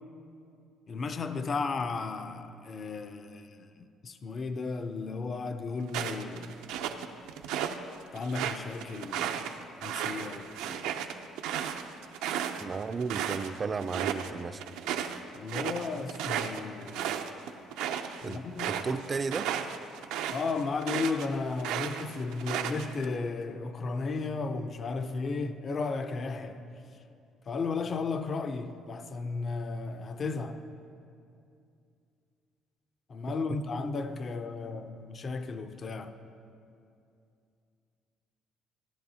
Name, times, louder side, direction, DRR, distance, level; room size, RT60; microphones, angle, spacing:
voice 1, 0.9-3.7 4.0-6.5 8.1-10.9 15.3-17.1 18.2-18.8 20.3-26.6 27.5-30.6 33.1-36.1, left 4 dB, 40° left, 0.5 m, -34 dB
sound 1, 5.9-7.8 8.2-13.5 13.8-14.3 14.6-21.3 21.6-23.0, right 9 dB, 90° right, 0.5 m, -34 dB
voice 2, 12.6-14.6 18.2-19.5 33.5-33.6, right 5 dB, 35° right, 0.3 m, -34 dB
15.0 x 10.5 x 2.8 m
cardioid pair, 105°, 0 cm